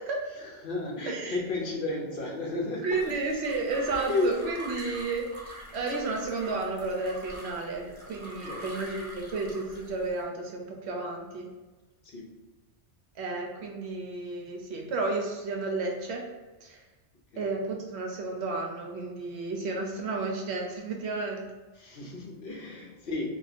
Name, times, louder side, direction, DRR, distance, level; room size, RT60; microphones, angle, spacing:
voice 1, 0.2-3.3 4.1-4.7 8.4-8.8 12.0-12.4 17.3-17.6 21.7-23.4, left 2 dB, 60° left, -1 dB, 0.7 m, -33 dB
voice 2, 1.1-1.4 2.8-11.5 13.2-16.2 16.6-16.8 17.4-21.5, right 3 dB, 70° right, 1 dB, 0.9 m, -32 dB
sound 1, 2.9-10.2, right 1 dB, 30° left, 0.9 m, -44 dB
2.6 x 2.4 x 4.1 m, 1.2 s
omnidirectional pair, 1.2 m